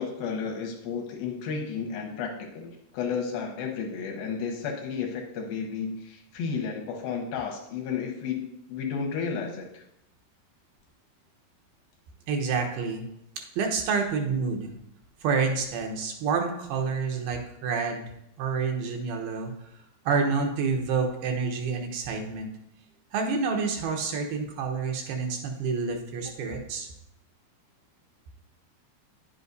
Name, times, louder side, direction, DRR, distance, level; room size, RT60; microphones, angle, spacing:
voice 1, 0.0-9.8, left 6 dB, 75° left, 2 dB, 2.5 m, -32 dB
voice 2, 12.3-13.1 13.4-14.7 15.2-18.1 18.4-19.5 20.1-22.5 23.1-26.9, right 5 dB, 80° right, 2 dB, 2.7 m, -28 dB
10.0 x 7.9 x 2.6 m, 0.77 s
omnidirectional pair, 4.6 m